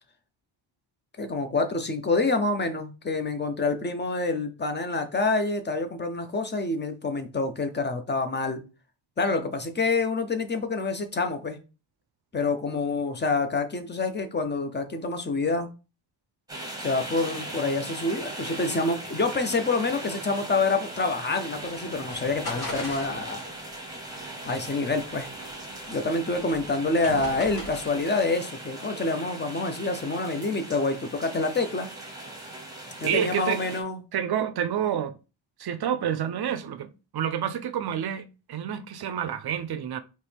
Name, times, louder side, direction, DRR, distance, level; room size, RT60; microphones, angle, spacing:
voice 1, 1.2-8.6 9.2-11.6 12.3-15.7 16.8-23.4 24.5-25.3 25.9-31.9 33.0-34.0, left 3 dB, 20° left, 0.6 m, -27 dB
sound 1, 16.5-33.8, right 1 dB, 5° right, 1.0 m, -39 dB
sound 2, 21.6-28.2, left 2 dB, 45° left, 1.9 m, -41 dB
voice 2, 33.0-33.6 34.1-35.2 35.6-40.0, right 9 dB, 50° right, 0.5 m, -28 dB
4.4 x 3.0 x 3.4 m
wide cardioid pair, 150°, 50 cm